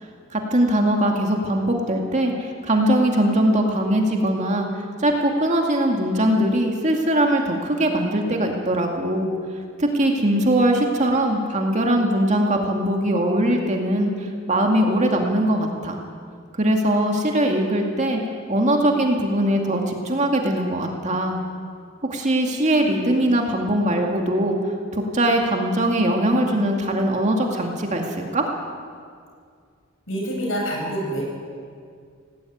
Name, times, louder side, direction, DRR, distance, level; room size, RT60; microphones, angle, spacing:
voice 1, 0.3-4.7 5.0-9.3 9.8-16.0 16.6-18.2 18.5-21.4 22.1-24.6 24.9-28.4, right 1 dB, 35° right, 1 dB, 2.2 m, -21 dB
voice 2, 30.1-31.2, equal, 80° left, -2 dB, 7.9 m, -26 dB
18.0 x 18.0 x 9.4 m, 2.1 s
head